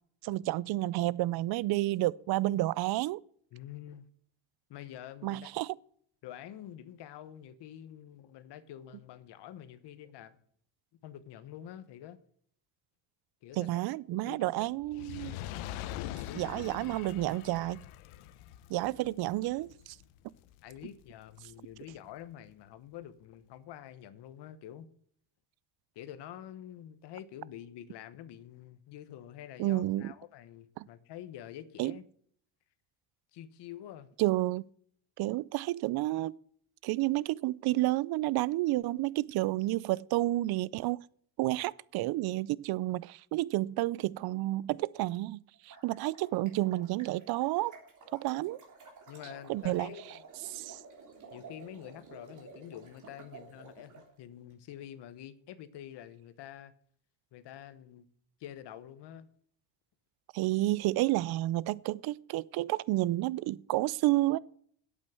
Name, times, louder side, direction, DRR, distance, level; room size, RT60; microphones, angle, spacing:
voice 1, 0.2-3.2 5.2-5.8 13.6-15.4 16.3-17.8 18.7-20.0 29.6-30.1 30.8-30.9 31.8-32.0 34.2-34.6 35.2-36.4 36.8-41.0 41.4-47.7 48.1-48.6 49.5-49.9 50.5-50.8 60.3-64.4, right 17 dB, 55° right, 0.5 m, -30 dB
voice 2, 3.5-4.0 4.7-5.5 6.2-10.4 11.0-12.2 13.4-13.8 14.3-14.7 15.9-16.6 20.6-24.9 25.9-32.0 33.3-34.1 41.5-41.7 49.1-50.2 51.3-56.7 57.3-58.1 58.4-59.3, left 11 dB, 60° left, 1.2 m, -47 dB
Fire, 14.8-21.2 21.9-22.0, left 13 dB, 85° left, 0.9 m, -43 dB
sound 1, 45.5-54.0, right 4 dB, 40° right, 3.6 m, -52 dB
8.5 x 8.5 x 7.7 m
cardioid pair, 145°, 47 cm